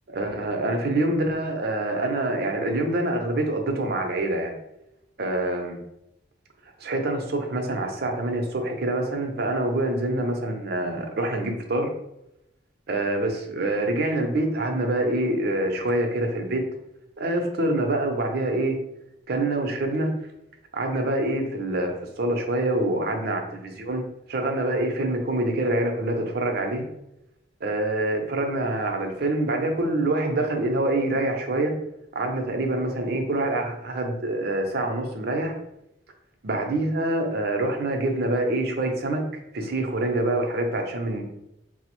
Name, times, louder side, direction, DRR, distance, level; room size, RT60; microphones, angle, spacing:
voice 1, 0.1-4.6 5.2-5.8 6.8-11.9 12.9-16.6 17.2-18.8 19.3-20.1 20.7-24.0 24.3-26.8 27.6-31.7 32.1-35.5 36.4-39.2 39.5-41.2, right 1 dB, 55° right, 3 dB, 0.6 m, -25 dB
4.5 x 2.0 x 3.0 m, 0.85 s
head